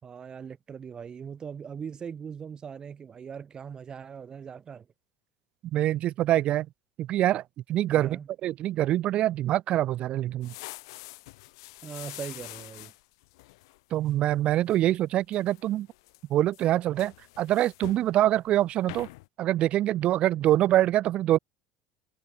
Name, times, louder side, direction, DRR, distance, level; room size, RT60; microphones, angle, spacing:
voice 1, 0.0-4.9 7.9-8.3 11.8-12.9, right 7 dB, 30° right, 2.6 m, -40 dB
voice 2, 5.7-6.7 7.0-7.4 7.7-10.5 13.9-15.9 16.3-19.1 19.4-21.4, right 13 dB, 50° right, 0.3 m, -25 dB
sound 1, 10.4-14.1 14.5-14.8 15.2-16.2 16.5-18.1 18.5-18.6 18.9-19.3, left 23 dB, 80° left, 6.7 m, -45 dB
supercardioid pair, 95°, 3 cm